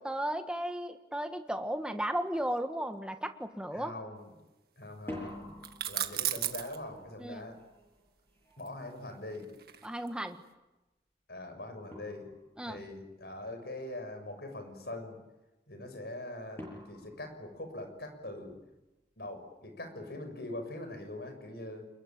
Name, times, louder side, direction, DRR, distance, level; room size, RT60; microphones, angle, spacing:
voice 1, 0.0-3.9 7.2-7.5 9.8-10.4 12.6-12.8, right 1 dB, 5° right, 6 dB, 1.7 m, -35 dB
sound 1, 2.3-2.5 2.9-3.4 4.9-9.7 11.4-11.5 11.9-12.8 16.6-18.3, left 1 dB, 10° left, 7.7 m, -48 dB
voice 2, 3.7-4.3 4.8-5.6 5.9-7.6 8.6-9.5 11.3-12.3 12.6-15.2 15.7-18.6 19.2-21.9, left 1 dB, 65° left, 7 dB, 6.5 m, -42 dB
sound 2, 5.6-6.8 8.6-10.2, right 12 dB, 55° right, 2.0 m, -35 dB
28.5 x 22.0 x 9.0 m, 1.0 s
head